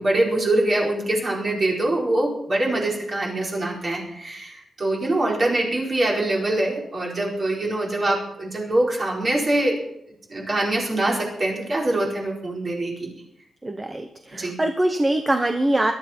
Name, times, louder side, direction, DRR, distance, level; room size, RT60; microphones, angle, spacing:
voice 1, 0.0-9.8 10.3-13.1 14.3-14.5, right 1 dB, 30° right, -3 dB, 4.4 m, -24 dB
voice 2, 13.6-15.9, right 1 dB, 15° right, 6 dB, 0.9 m, -23 dB
21.5 x 12.5 x 4.4 m, 0.78 s
wide cardioid pair, 175°, 0 cm